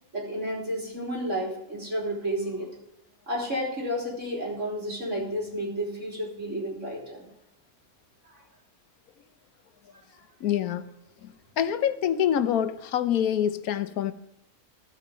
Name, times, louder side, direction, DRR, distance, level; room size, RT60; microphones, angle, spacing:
voice 1, 0.1-2.7 3.3-7.2, equal, 55° right, -3 dB, 3.9 m, -31 dB
voice 2, 10.4-10.9 11.2-11.3 11.6-14.1, left 9 dB, 85° left, 12 dB, 1.2 m, -26 dB
15.5 x 5.7 x 5.1 m, 0.89 s
omnidirectional pair, 1.5 m